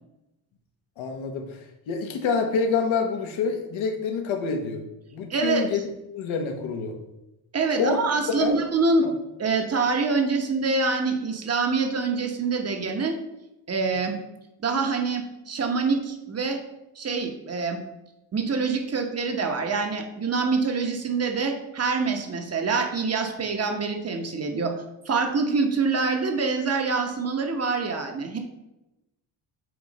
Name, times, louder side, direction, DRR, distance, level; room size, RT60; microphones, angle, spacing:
voice 1, 1.0-4.8 5.1-5.8 6.1-6.9 7.8-8.0 8.3-8.6 9.0-9.1, left 5 dB, 70° left, 5 dB, 1.3 m, -27 dB
voice 2, 5.3-5.7 7.5-9.1 9.4-13.2 13.7-14.2 14.6-16.6 17.0-17.8 18.3-24.7 25.0-28.4, right 4 dB, 30° right, 4 dB, 1.1 m, -25 dB
7.9 x 3.1 x 5.2 m, 0.94 s
cardioid pair, 120°, 48 cm